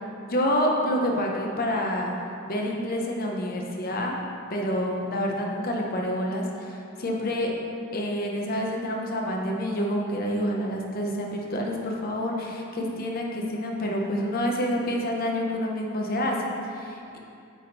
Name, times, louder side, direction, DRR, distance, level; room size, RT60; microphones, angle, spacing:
voice 1, 0.3-2.1 2.5-4.2 4.5-7.5 7.9-17.2, equal, 45° left, 0 dB, 0.7 m, -28 dB
8.5 x 3.5 x 4.1 m, 2.5 s
head